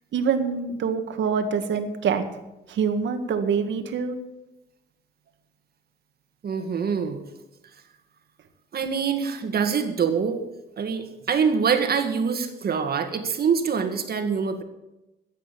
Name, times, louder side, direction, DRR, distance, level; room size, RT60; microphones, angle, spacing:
voice 1, 0.1-2.2 2.7-4.2, right 6 dB, 70° right, 7 dB, 1.8 m, -25 dB
voice 2, 6.4-7.2 8.7-10.4 10.8-14.6, right 6 dB, 50° right, 7 dB, 2.1 m, -25 dB
14.0 x 9.2 x 7.6 m, 0.98 s
cardioid pair, 90°, 20 cm